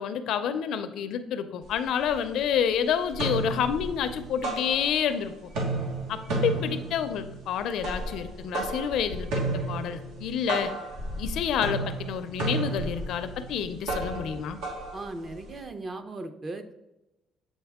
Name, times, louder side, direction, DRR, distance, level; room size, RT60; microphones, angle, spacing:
voice 1, 0.0-5.3 6.1-10.7 11.2-14.6, left 8 dB, 65° left, 10 dB, 0.5 m, -29 dB
sound 1, 1.6-1.7 2.1-2.7 3.0-5.2 5.4-15.6, right 2 dB, 85° right, 1.5 m, -33 dB
voice 2, 14.9-16.8, right 2 dB, 25° right, 7 dB, 0.5 m, -37 dB
7.9 x 4.0 x 3.5 m, 0.93 s
cardioid pair, 150°, 0 cm